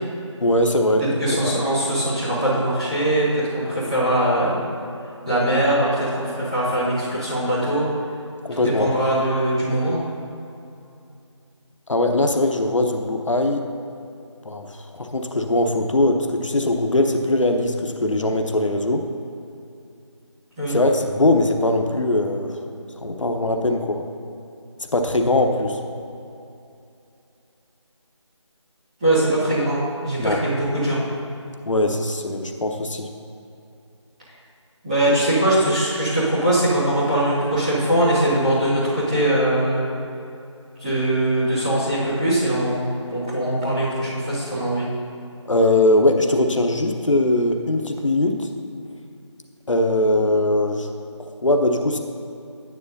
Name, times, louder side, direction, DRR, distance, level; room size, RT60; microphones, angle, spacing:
voice 1, 0.4-1.0 1.4-1.5 8.4-8.9 11.9-13.7 14.4-19.1 20.7-22.6 23.0-24.0 24.9-25.8 30.2-30.4 31.7-33.1 45.5-48.5 49.7-50.9 51.2-52.0, left 1 dB, 80° left, 4 dB, 0.9 m, -21 dB
voice 2, 1.0-4.6 5.2-7.9 8.6-10.0 20.6-20.7 29.0-31.0 34.8-39.8 40.8-44.9, right 1 dB, 10° right, -14 dB, 2.1 m, -21 dB
9.8 x 9.4 x 2.7 m, 2.7 s
figure-of-eight pair, 175°, 16 cm